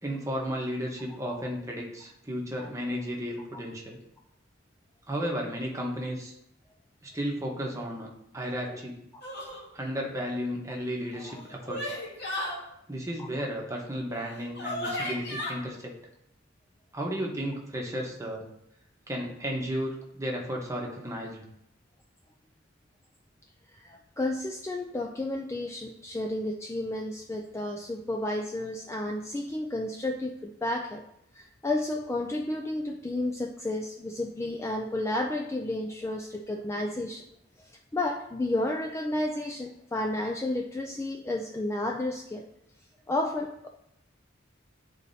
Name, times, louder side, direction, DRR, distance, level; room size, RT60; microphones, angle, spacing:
voice 1, 0.0-4.0 5.1-6.3 7.0-9.0 9.7-12.0 12.9-15.9 16.9-18.4 19.1-21.4, equal, 15° right, -1 dB, 1.0 m, -34 dB
sound 1, 9.2-9.6 11.0-12.6 14.1-14.2 14.5-15.5, left 1 dB, 55° left, 1.8 m, -34 dB
voice 2, 23.7-31.0 31.3-37.2 37.6-42.5 43.1-43.7, left 1 dB, 15° left, 2 dB, 0.3 m, -32 dB
10.5 x 4.1 x 2.7 m, 0.79 s
head